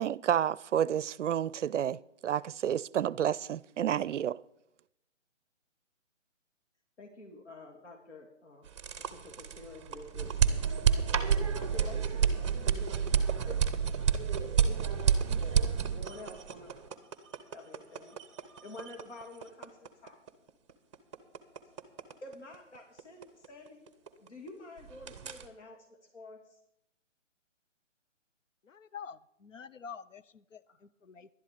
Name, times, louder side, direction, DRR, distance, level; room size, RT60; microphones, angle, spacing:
voice 1, 0.0-4.4, right 10 dB, 70° right, 0.5 m, -30 dB
voice 2, 7.0-8.7 9.1-10.7 11.2-13.9 15.3-15.6 15.9-16.7 17.5-18.2 18.6-20.2 22.2-23.8 24.2-26.4, left 2 dB, 65° left, 2.5 m, -49 dB
sound 1, 8.6-24.5 24.8-25.4, right 7 dB, 25° right, 0.7 m, -30 dB
voice 3, 28.7-31.3, left 6 dB, 80° left, 0.8 m, -47 dB
11.5 x 11.0 x 5.1 m
figure-of-eight pair, 150°, 38 cm